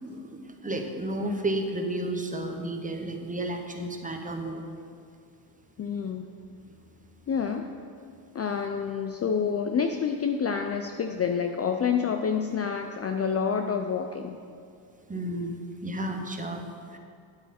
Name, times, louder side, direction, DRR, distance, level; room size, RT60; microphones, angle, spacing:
voice 1, 0.0-4.6 15.1-16.6 16.9-17.0, right 1 dB, 15° right, 4 dB, 1.0 m, -32 dB
voice 2, 5.8-6.3 7.3-7.7 8.3-14.4, left 6 dB, 30° left, 5 dB, 0.5 m, -28 dB
9.7 x 8.0 x 4.3 m, 2.3 s
cardioid pair, 90°, 50 cm